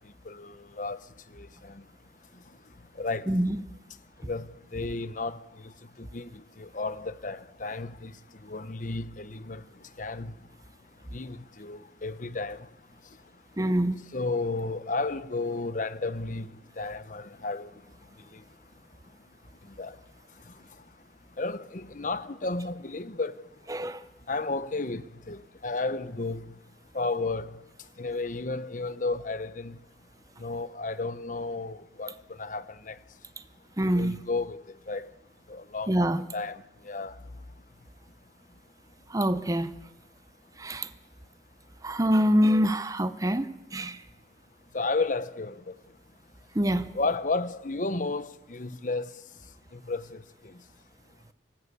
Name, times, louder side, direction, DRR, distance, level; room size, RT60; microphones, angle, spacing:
voice 1, 0.3-1.0 1.3-1.8 3.0-3.3 4.2-5.4 5.6-5.7 6.0-8.1 8.4-9.6 10.0-10.3 11.1-12.7 14.1-16.5 16.8-17.7 19.8-20.0 21.4-23.3 24.3-26.5 26.9-27.6 28.0-29.8 30.4-32.1 32.4-33.0 33.9-34.6 34.9-35.1 35.5-35.9 36.3-37.1 44.7-45.7 46.9-49.1 49.7-50.2, left 3 dB, 45° left, 0.8 m, -32 dB
voice 2, 3.3-3.6 13.6-14.0 23.7-24.0 33.8-34.2 35.9-36.2 39.1-39.7 40.6-40.9 41.8-44.0 46.5-46.9, equal, 20° right, 0.7 m, -25 dB
24.5 x 14.5 x 8.4 m
head